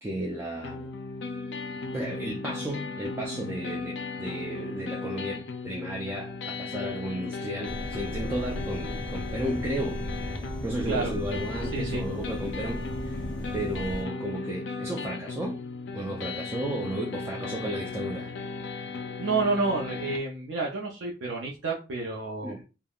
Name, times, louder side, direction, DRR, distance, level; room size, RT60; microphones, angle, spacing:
voice 1, 0.0-0.9 1.9-10.0 10.4-13.2 13.5-15.6 15.9-18.3 22.4-22.6, right 1 dB, 15° right, 0.4 m, -34 dB
sound 1, 0.6-20.2, left 3 dB, 65° left, 0.4 m, -36 dB
sound 2, 7.6-14.0, equal, 10° left, 1.4 m, -36 dB
voice 2, 11.7-12.0 19.2-22.6, right 3 dB, 80° right, 0.5 m, -29 dB
3.4 x 2.1 x 2.3 m
head